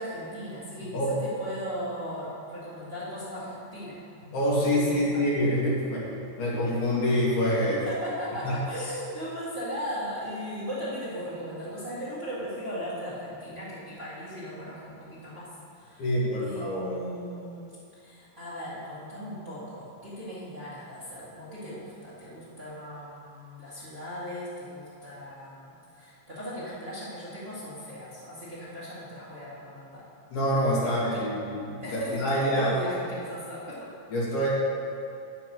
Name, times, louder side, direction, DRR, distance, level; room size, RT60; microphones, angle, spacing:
voice 1, 0.0-4.0 4.7-5.2 7.9-16.1 16.4-17.7 18.0-30.1 30.8-31.2 31.8-33.9, equal, 20° right, -10 dB, 2.0 m, -38 dB
voice 2, 0.8-1.2 4.3-7.9 8.4-8.5 16.0-16.9 30.3-32.7 34.1-34.5, equal, 75° left, -7 dB, 3.8 m, -26 dB
9.9 x 7.0 x 6.1 m, 2.5 s
omnidirectional pair, 3.5 m